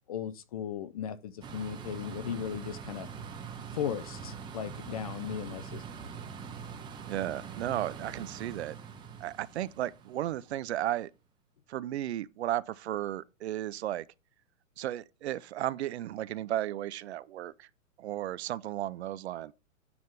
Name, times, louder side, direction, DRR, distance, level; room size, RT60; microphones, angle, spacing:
voice 1, 0.1-3.1 3.7-5.8, left 8 dB, 30° left, 0.4 m, -37 dB
sound 1, 1.4-10.6, right 6 dB, 10° right, 0.8 m, -43 dB
voice 2, 7.0-8.7 9.2-11.1 11.7-14.0 14.8-17.7 18.0-19.5, right 13 dB, 55° right, 0.5 m, -34 dB
9.5 x 3.5 x 5.8 m
hypercardioid pair, 140°, 41 cm